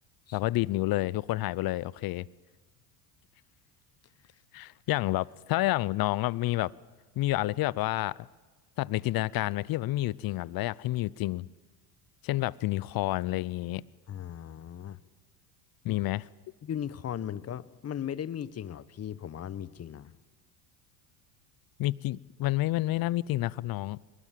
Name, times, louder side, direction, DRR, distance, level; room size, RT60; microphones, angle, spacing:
voice 1, 0.3-2.3 4.5-6.7 7.2-8.2 8.8-11.5 12.2-13.8 15.8-16.2 21.8-24.0, left 17 dB, 45° left, 23 dB, 0.7 m, -29 dB
voice 2, 14.1-15.0 15.9-16.0 16.6-20.2, left 9 dB, 30° left, 18 dB, 1.1 m, -37 dB
23.0 x 23.0 x 7.6 m, 1.3 s
hypercardioid pair, 85°, 48 cm